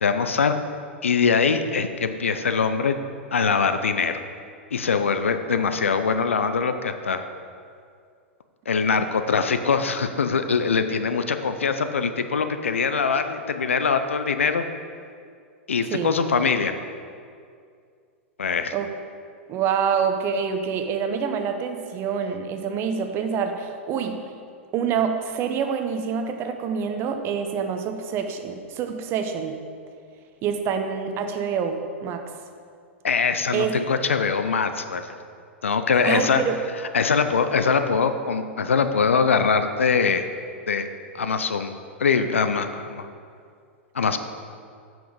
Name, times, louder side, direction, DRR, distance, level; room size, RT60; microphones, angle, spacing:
voice 1, 0.0-0.5 1.0-3.0 3.3-4.2 4.7-7.2 8.7-14.6 15.7-16.7 18.4-18.7 33.0-35.1 35.6-36.4 36.9-40.3 40.7-40.9 41.1-41.7 42.0-43.1 43.9-44.2, left 5 dB, 75° left, 9 dB, 0.5 m, -22 dB
voice 2, 19.5-24.2 24.7-29.6 30.4-32.3 33.5-33.8 36.0-36.6, right 6 dB, 35° right, 6 dB, 0.8 m, -26 dB
7.6 x 6.0 x 5.2 m, 2.3 s
figure-of-eight pair, 100°, 7 cm